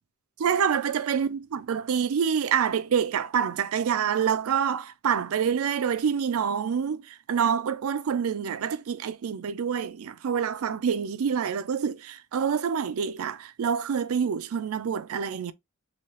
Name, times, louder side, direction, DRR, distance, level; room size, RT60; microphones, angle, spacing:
voice 1, 0.4-15.5, right 7 dB, 85° right, 0.4 m, -27 dB
3.0 x 2.8 x 3.0 m
head